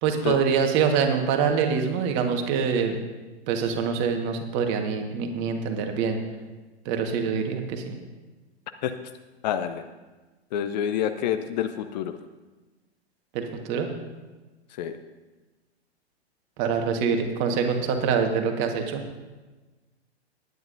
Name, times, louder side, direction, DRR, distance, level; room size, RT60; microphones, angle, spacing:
voice 1, 0.0-3.0 3.5-6.2 6.8-7.9 13.3-13.9 16.6-19.0, right 6 dB, 35° right, 4 dB, 1.5 m, -25 dB
voice 2, 9.4-9.8 10.5-12.1 14.8-15.0, left 10 dB, 40° left, 10 dB, 0.6 m, -27 dB
19.0 x 9.6 x 2.7 m, 1.2 s
figure-of-eight pair, 105°, 33 cm